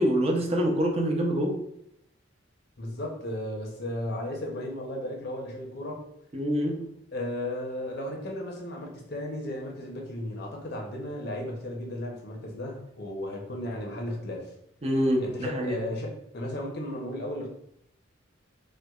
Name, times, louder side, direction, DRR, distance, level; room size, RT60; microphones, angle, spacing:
voice 1, 0.0-1.6 6.3-6.9 14.8-15.8, equal, 30° right, 1 dB, 0.5 m, -25 dB
voice 2, 2.8-6.0 7.1-14.5 15.2-17.5, left 1 dB, 55° left, 0 dB, 0.7 m, -35 dB
4.3 x 2.2 x 2.3 m, 0.75 s
head